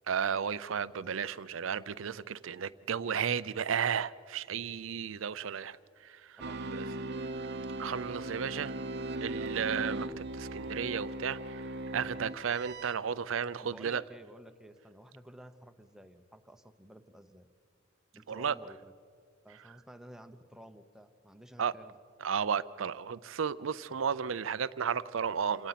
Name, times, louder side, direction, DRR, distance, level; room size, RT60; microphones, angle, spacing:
voice 1, 0.1-5.8 6.0-6.4 6.7-6.8 7.8-8.7 9.2-10.1 10.3-11.6 11.9-14.0 18.3-18.5 21.6-21.7 22.2-25.7, right 7 dB, 75° right, 0.5 m, -33 dB
sound 1, 6.4-13.0, right 2 dB, 55° right, 0.9 m, -38 dB
voice 2, 13.6-17.5 18.1-18.9 19.4-22.0, equal, 5° right, 0.9 m, -52 dB
27.5 x 17.5 x 5.8 m
head